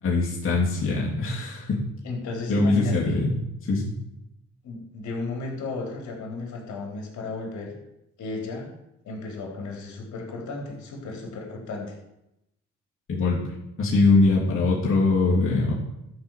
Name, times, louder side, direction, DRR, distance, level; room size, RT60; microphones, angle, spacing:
voice 1, 0.0-1.8 2.5-3.4 3.7-4.0 13.1-13.4 13.8-15.7, left 3 dB, 45° left, -6 dB, 3.4 m, -22 dB
voice 2, 2.0-3.2 4.6-7.7 8.2-8.7 9.0-12.0 14.2-14.3, left 3 dB, 70° left, 0 dB, 4.1 m, -34 dB
13.0 x 5.2 x 7.5 m, 0.86 s
cardioid pair, 90°, 30 cm